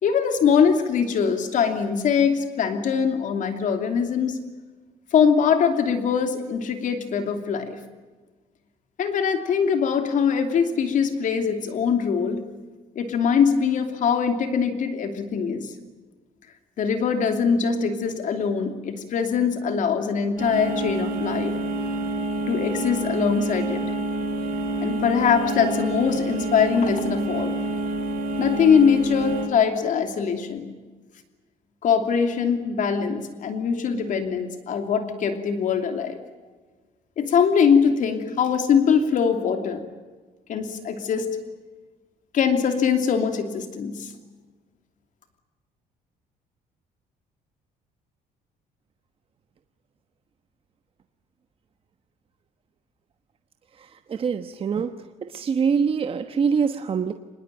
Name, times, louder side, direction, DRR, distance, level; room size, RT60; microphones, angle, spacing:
voice 1, 0.0-4.4 5.1-7.8 9.0-12.4 12.9-15.7 16.8-21.6 22.5-23.8 24.8-27.5 28.4-30.7 31.8-36.2 37.2-39.8 40.5-41.4 42.3-44.1, left 6 dB, 60° left, 7 dB, 2.9 m, -22 dB
sound 1, 20.4-29.5, right 2 dB, 75° right, 5.0 m, -28 dB
voice 2, 53.8-57.1, right 6 dB, 40° right, 8 dB, 1.2 m, -25 dB
26.0 x 21.0 x 9.1 m, 1.3 s
cardioid pair, 125°, 15 cm